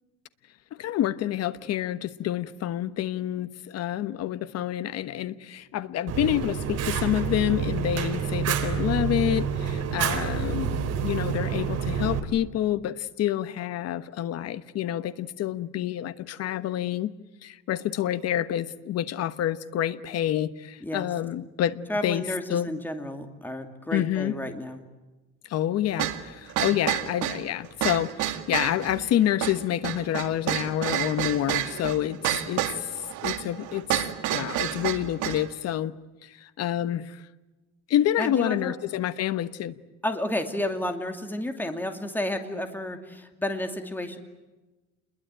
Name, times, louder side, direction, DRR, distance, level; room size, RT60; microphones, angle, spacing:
voice 1, 0.8-17.1 17.4-22.2 22.5-22.7 23.9-24.4 25.5-34.0 34.3-35.9 36.2-37.2 37.9-39.8, left 12 dB, 55° left, 1.2 m, -28 dB
Fire, 6.1-12.2, right 7 dB, 55° right, 3.7 m, -28 dB
voice 2, 21.9-24.8 38.2-38.7 40.0-44.2, left 1 dB, 5° left, 2.6 m, -31 dB
sound 1, 26.0-35.5, right 13 dB, 70° right, 2.2 m, -29 dB
28.5 x 22.0 x 9.0 m
cardioid pair, 150°, 30 cm